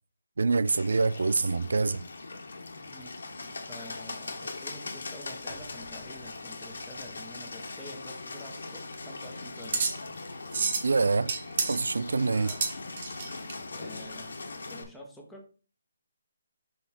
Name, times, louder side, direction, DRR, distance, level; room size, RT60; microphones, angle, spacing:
voice 1, 0.4-2.0 10.8-11.3 11.7-12.5, right 4 dB, 80° right, 0.3 m, -25 dB
Bird, 0.6-14.8, left 3 dB, 80° left, 1.7 m, -41 dB
voice 2, 3.7-9.9 12.3-12.6 13.6-14.4 14.7-15.5, equal, ahead, 0.8 m, -48 dB
sound 1, 8.4-13.5, right 4 dB, 30° right, 1.0 m, -32 dB
5.8 x 4.3 x 4.3 m
hypercardioid pair, 180°, 0 cm